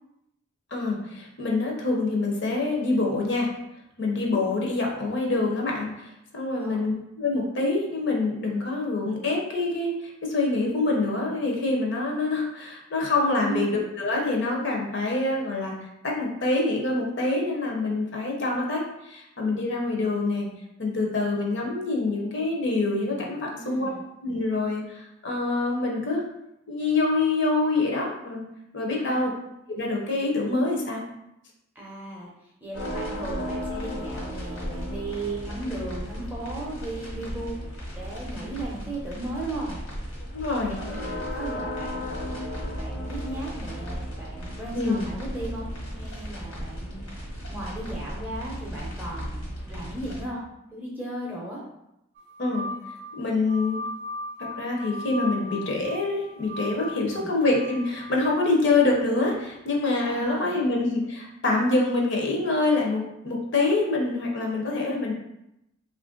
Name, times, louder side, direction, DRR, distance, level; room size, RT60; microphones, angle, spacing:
voice 1, 0.7-3.5 4.0-20.5 20.8-23.9 24.2-26.2 26.7-28.4 28.7-29.3 29.7-31.0 40.3-40.8 44.7-45.0 52.4-52.7 53.2-53.8 54.4-65.1, left 3 dB, 55° left, -1 dB, 0.7 m, -26 dB
voice 2, 13.4-13.8 23.5-24.0 28.9-29.3 31.7-32.3 32.6-39.8 40.7-47.1 47.5-50.4 50.7-51.6 56.9-57.3 60.0-60.6, right 2 dB, 10° right, -4 dB, 0.6 m, -36 dB
sound 1, 32.7-50.2, equal, 80° left, 1.2 m, -35 dB
sound 2, 52.2-58.1, left 1 dB, 55° right, 0.5 m, -37 dB
3.0 x 2.5 x 3.7 m, 0.84 s
head